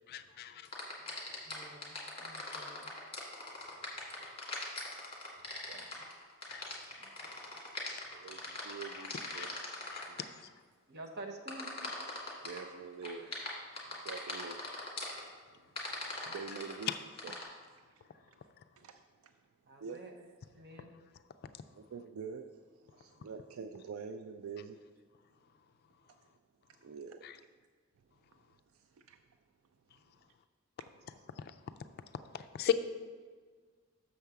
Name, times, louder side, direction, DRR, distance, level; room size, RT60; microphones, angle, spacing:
voice 1, 0.1-0.7 6.5-6.6 9.3-9.5 9.9-10.0 16.9-17.0 27.2-27.3 32.3-32.7, left 9 dB, 50° left, 10 dB, 0.3 m, -34 dB
sound 1, 0.6-10.2 11.5-12.6 13.0-15.2 15.8-17.4, left 2 dB, 25° left, 1.8 m, -41 dB
voice 2, 1.4-2.9 5.7-5.8 7.0-7.3 10.9-11.7 19.7-20.1 20.5-20.9, right 2 dB, 55° right, 4 dB, 0.8 m, -49 dB
voice 3, 3.6-3.9 4.2-4.3 5.7-6.0 8.1-10.3 11.6-13.4 13.9-14.7 16.2-16.9 17.2-17.3 17.9-18.0 18.3-18.4 18.8-19.0 19.8-20.4 21.7-24.8 26.8-27.2 28.7-29.2, right 5 dB, 75° right, 7 dB, 0.4 m, -47 dB
6.5 x 4.7 x 6.7 m, 1.5 s
head